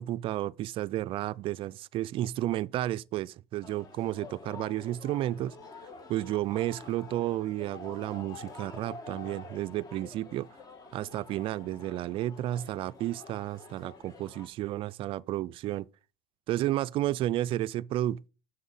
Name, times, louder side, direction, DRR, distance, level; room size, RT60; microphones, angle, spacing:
voice 1, 0.0-5.5 6.1-10.5 10.9-15.9 16.5-18.3, right 14 dB, 45° right, 0.4 m, -32 dB
sound 1, 3.6-14.5, left 4 dB, 30° left, 1.7 m, -48 dB
7.8 x 6.2 x 5.4 m
supercardioid pair, 120°, 13 cm